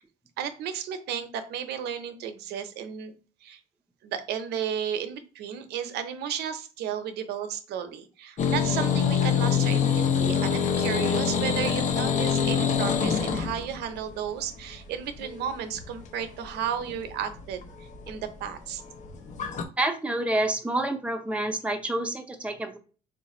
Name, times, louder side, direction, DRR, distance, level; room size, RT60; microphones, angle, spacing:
voice 1, 0.4-3.1 3.4-3.6 4.0-18.8, right 8 dB, 75° right, 9 dB, 0.6 m, -33 dB
sound 1, 8.4-19.6, left 7 dB, 45° left, 0.6 m, -26 dB
voice 2, 19.8-22.8, right 1 dB, 5° right, 5 dB, 0.6 m, -28 dB
3.2 x 2.4 x 4.1 m, 0.37 s
cardioid pair, 110°, 17 cm